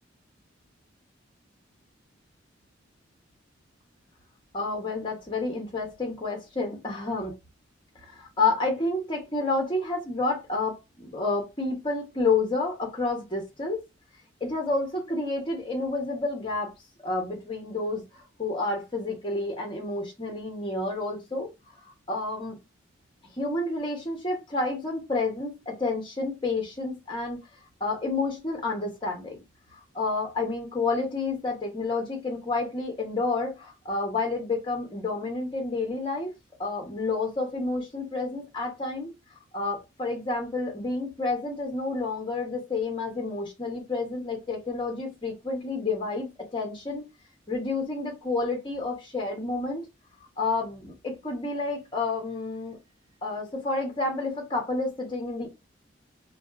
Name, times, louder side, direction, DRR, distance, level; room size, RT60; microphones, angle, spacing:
voice 1, 4.5-7.3 8.1-13.8 14.4-16.7 17.0-21.5 22.1-22.6 23.4-27.4 27.8-29.4 29.9-36.3 36.6-39.1 39.5-47.0 47.5-49.9 50.4-52.8 53.2-55.5, left 3 dB, 25° left, 1.0 m, -29 dB
2.5 x 2.4 x 3.4 m
head